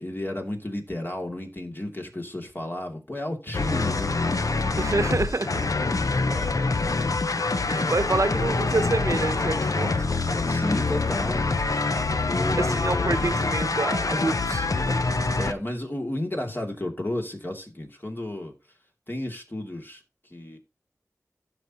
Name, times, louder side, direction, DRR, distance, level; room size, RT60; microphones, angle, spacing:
voice 1, 0.0-4.3 6.3-6.5 7.7-8.0 10.5-11.9 12.3-13.3 15.4-18.5 19.1-20.0 20.3-20.6, left 1 dB, 35° left, 2.6 m, -32 dB
sound 1, 3.5-15.5, left 3 dB, 70° left, 0.7 m, -25 dB
voice 2, 4.8-5.6 7.7-10.0 12.6-14.7, right 3 dB, 60° right, 0.9 m, -27 dB
15.0 x 6.0 x 3.0 m
wide cardioid pair, 40°, 6 cm